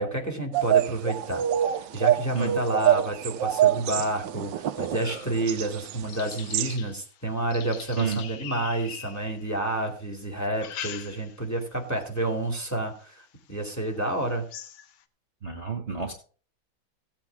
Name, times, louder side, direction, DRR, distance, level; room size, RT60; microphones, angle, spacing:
voice 1, 0.0-1.4 1.7-14.5, right 1 dB, 10° left, 2 dB, 2.3 m, -29 dB
sound 1, 0.5-6.0 6.3-6.8, right 11 dB, 70° right, 1.3 m, -26 dB
sound 2, 4.8-9.8 10.4-11.6 12.0-12.4 13.0-13.1 13.5-13.6 14.0-15.0, left 9 dB, 85° left, 1.8 m, -43 dB
voice 2, 15.4-16.1, right 6 dB, 35° right, 3 dB, 1.5 m, -30 dB
16.0 x 8.6 x 3.5 m, 0.40 s
omnidirectional pair, 2.2 m